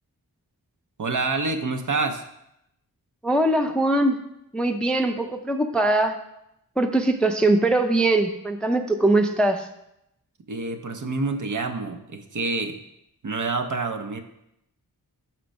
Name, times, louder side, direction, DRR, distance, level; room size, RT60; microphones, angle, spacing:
voice 1, 1.0-2.2 10.5-12.8 13.2-14.2, right 3 dB, 55° right, 7 dB, 0.6 m, -27 dB
voice 2, 3.2-4.2 4.5-6.2 6.8-9.7, right 2 dB, 5° left, 6 dB, 0.4 m, -21 dB
5.8 x 4.4 x 5.2 m, 0.81 s
wide cardioid pair, 80°, 38 cm